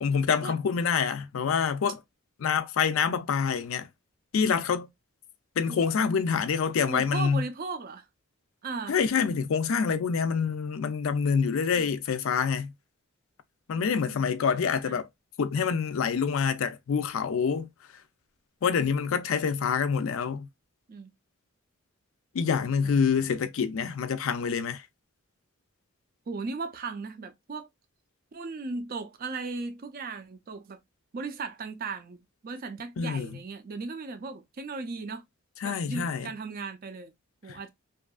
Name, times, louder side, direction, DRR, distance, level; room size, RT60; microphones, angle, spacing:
voice 1, 0.0-2.0 2.4-3.9 4.3-4.9 5.6-7.4 8.9-12.7 13.7-15.1 15.4-17.7 18.6-20.5 22.3-24.8 33.0-33.3 35.6-36.3, left 6 dB, 65° left, 0.4 m, -26 dB
voice 2, 6.9-8.1 8.6-9.0 11.7-12.0 14.1-15.0 20.9-21.1 22.8-23.3 26.3-27.7 28.3-30.8 31.1-35.2 35.6-37.1 37.4-37.7, right 4 dB, 40° right, 0.4 m, -37 dB
2.7 x 2.4 x 2.2 m
head